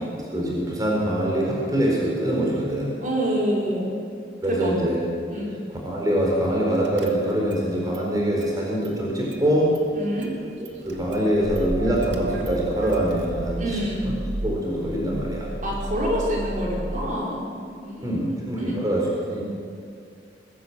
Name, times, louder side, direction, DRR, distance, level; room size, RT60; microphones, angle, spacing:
voice 1, 0.3-3.0 4.4-5.0 5.8-9.7 10.9-13.8 14.4-15.5 18.0-19.4, right 1 dB, 20° right, -3 dB, 4.4 m, -24 dB
voice 2, 3.0-3.9 4.5-4.7 5.3-5.5 9.9-10.3 13.6-14.1 15.6-18.8, equal, 45° right, -3 dB, 4.8 m, -27 dB
Car / Engine starting, 6.3-6.5 6.8-7.7 7.9-9.0 9.3-17.1, right 1 dB, 85° right, 2.1 m, -34 dB
21.5 x 16.0 x 8.0 m, 2.3 s
head